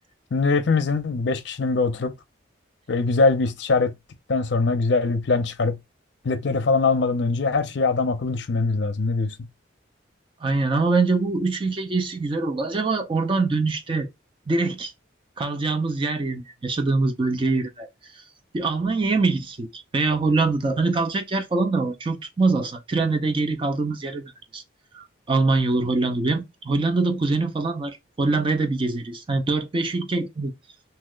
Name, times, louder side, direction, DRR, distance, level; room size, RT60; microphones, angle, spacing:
voice 1, 0.3-2.1 2.9-3.9 4.3-5.8 6.2-9.4, left 3 dB, 60° left, 0.5 m, -22 dB
voice 2, 10.4-14.1 14.5-14.9 15.4-17.9 18.5-24.6 24.9-30.5, right 3 dB, 25° right, 0.4 m, -24 dB
2.8 x 2.1 x 3.7 m
head